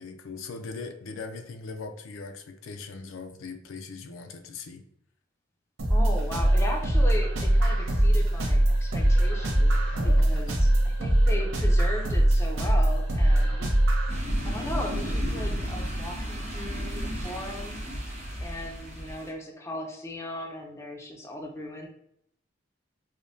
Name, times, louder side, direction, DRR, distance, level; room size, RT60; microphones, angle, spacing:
voice 1, 0.0-4.8 9.9-10.5 13.4-13.7, left 4 dB, 80° left, 6 dB, 0.4 m, -40 dB
sound 1, 5.8-14.1, right 1 dB, 75° right, 0.8 m, -22 dB
voice 2, 5.9-9.8 10.2-13.7 14.4-17.8 18.4-21.9, left 1 dB, 15° left, 1 dB, 0.4 m, -37 dB
sound 2, 14.1-19.3, equal, 35° right, 1.1 m, -32 dB
4.9 x 2.1 x 2.6 m, 0.73 s
head